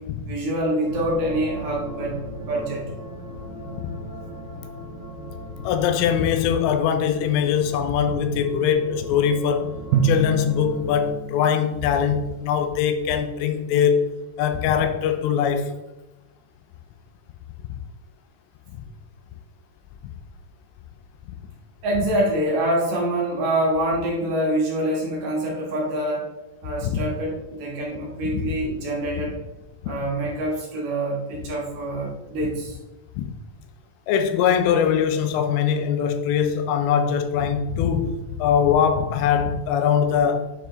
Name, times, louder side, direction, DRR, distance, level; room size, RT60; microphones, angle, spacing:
voice 1, 0.2-2.8 21.8-26.3 26.6-29.4 29.8-32.8, right 1 dB, 65° right, 3.3 m, -25 dB
sound 1, 0.9-11.1, equal, 60° left, 1.4 m, -37 dB
voice 2, 5.6-9.7 10.0-14.1 14.4-15.7 17.7-17.8 26.8-27.0 28.3-28.5 29.8-29.9 33.2-33.3 34.1-40.5, left 8 dB, 85° left, 2.9 m, -22 dB
Drum, 9.9-12.1, right 4 dB, 90° right, 2.2 m, -26 dB
9.0 x 4.6 x 3.1 m
omnidirectional pair, 5.0 m